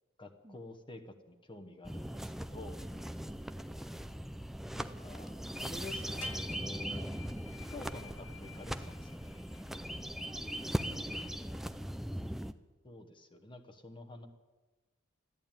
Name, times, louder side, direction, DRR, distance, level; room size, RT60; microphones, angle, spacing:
voice 1, 0.2-2.8 4.7-7.1 7.7-9.4 12.8-14.3, left 2 dB, 25° left, 6 dB, 1.1 m, -49 dB
sound 1, 1.8-12.5, equal, ahead, 0.4 m, -39 dB
voice 2, 2.7-3.6 9.9-12.2, right 1 dB, 25° right, 6 dB, 1.1 m, -59 dB
sound 2, 6.2-11.8, left 7 dB, 60° left, 0.9 m, -54 dB
13.5 x 11.0 x 8.9 m, 1.2 s
head